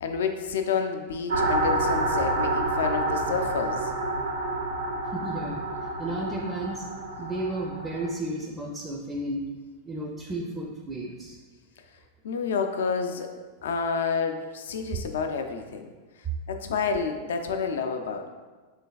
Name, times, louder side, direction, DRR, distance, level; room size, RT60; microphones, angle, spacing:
voice 1, 0.0-3.9 12.2-13.3 13.6-15.9 16.5-18.3, left 5 dB, 80° left, 5 dB, 0.3 m, -29 dB
sound 1, 1.3-8.1, right 2 dB, 85° right, 0.5 m, -28 dB
voice 2, 5.1-5.6 6.0-6.8 7.2-9.5 9.8-11.4, right 1 dB, 20° right, 0 dB, 0.4 m, -33 dB
3.2 x 3.2 x 2.3 m, 1.3 s
hypercardioid pair, 110°, 0 cm